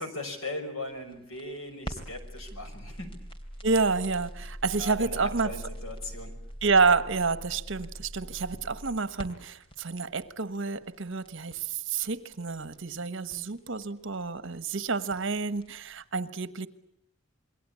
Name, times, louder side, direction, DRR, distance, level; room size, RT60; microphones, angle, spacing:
voice 1, 0.0-3.1 4.8-6.4, left 2 dB, 85° left, 5.9 m, -38 dB
sound 1, 0.9-16.0, equal, 25° left, 3.3 m, -44 dB
voice 2, 3.6-5.5 6.6-16.7, right 4 dB, 65° right, 1.3 m, -29 dB
28.0 x 22.5 x 8.5 m
head